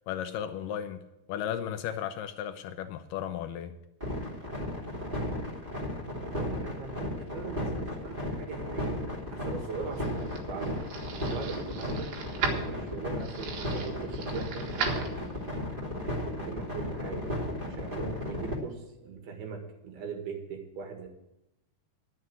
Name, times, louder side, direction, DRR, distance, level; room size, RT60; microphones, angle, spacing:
voice 1, 0.1-1.0 1.3-3.8, left 9 dB, 80° left, 8 dB, 2.0 m, -35 dB
sound 1, 4.0-18.5, left 1 dB, 15° right, 2.0 m, -34 dB
voice 2, 6.0-9.0 9.3-10.8 11.2-12.2 12.5-15.1 16.4-17.3 17.7-21.1, right 5 dB, 70° right, 3 dB, 3.7 m, -40 dB
sound 2, 9.6-15.6, right 6 dB, 90° right, 3.8 m, -38 dB
11.5 x 7.2 x 7.8 m, 0.89 s
omnidirectional pair, 4.8 m